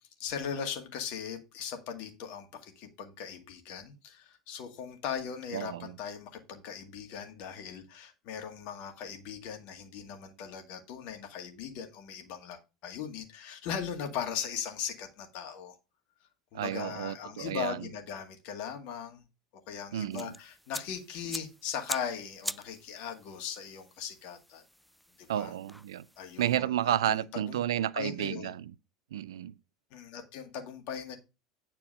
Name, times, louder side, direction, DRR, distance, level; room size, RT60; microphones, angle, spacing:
voice 1, 0.2-15.8 16.5-19.3 19.7-24.6 25.2-25.5 26.2-27.6 28.0-28.5 29.9-31.2, left 7 dB, 55° left, 2.0 m, -39 dB
voice 2, 5.5-5.9 16.5-17.9 19.9-20.3 25.3-26.1 26.4-28.7 29.1-29.5, right 11 dB, 75° right, 0.5 m, -31 dB
sound 1, 20.1-26.6, equal, ahead, 0.3 m, -44 dB
9.7 x 4.5 x 5.3 m
figure-of-eight pair, 80°, 3 cm